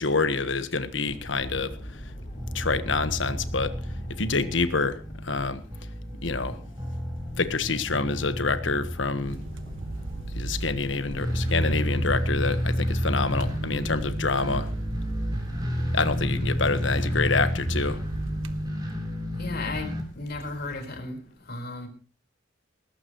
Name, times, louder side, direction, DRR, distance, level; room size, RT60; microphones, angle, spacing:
voice 1, 0.0-1.8 2.5-3.7 4.2-5.0 5.2-5.6 6.2-6.6 7.4-9.4 10.3-14.7 15.9-18.0, left 4 dB, 70° left, 12 dB, 1.4 m, -27 dB
sound 1, 1.0-20.8, equal, 30° left, 5.7 m, -43 dB
sound 2, 2.4-20.0, equal, 20° right, 4.0 m, -31 dB
sound 3, 9.3-18.7, right 2 dB, 90° right, 1.2 m, -38 dB
voice 2, 19.4-19.9 20.1-21.2 21.5-21.9, left 3 dB, 55° left, 4 dB, 4.5 m, -34 dB
19.5 x 15.0 x 3.1 m, 0.38 s
head